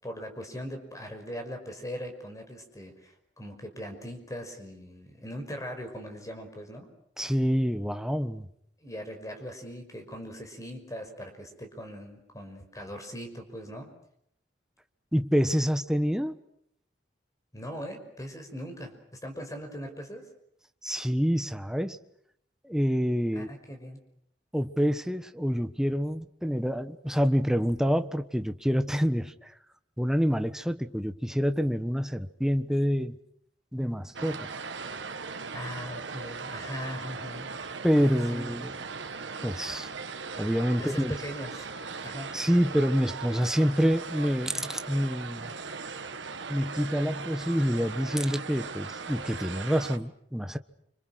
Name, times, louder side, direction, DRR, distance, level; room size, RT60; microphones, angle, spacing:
voice 1, 0.0-6.9 8.8-13.9 17.5-18.9 19.2-20.2 23.3-24.0 35.5-37.5 38.3-38.7 40.8-41.7 42.0-42.3, equal, 20° left, 5.6 m, -40 dB
voice 2, 7.2-8.5 15.1-16.4 20.8-22.0 22.6-23.5 24.5-29.5 30.0-33.2 33.7-34.5 37.8-38.7 39.4-39.9 40.4-41.2 42.3-45.5 46.5-50.6, equal, 5° right, 1.2 m, -27 dB
sound 1, 34.1-50.0, right 4 dB, 85° right, 1.7 m, -39 dB
30.0 x 27.0 x 6.4 m
head